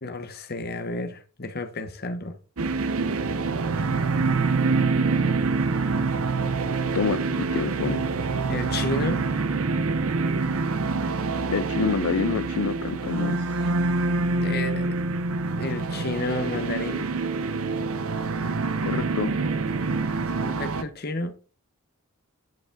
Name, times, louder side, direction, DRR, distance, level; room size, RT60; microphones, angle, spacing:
voice 1, 0.0-2.4 8.5-9.2 14.4-15.0 15.6-17.1 20.2-21.3, left 2 dB, 45° left, 1.1 m, -31 dB
sound 1, 2.6-20.8, right 3 dB, 75° right, 0.9 m, -26 dB
voice 2, 6.9-8.1 11.5-13.7 18.8-19.3, left 6 dB, 80° left, 0.4 m, -28 dB
11.0 x 4.9 x 3.9 m
head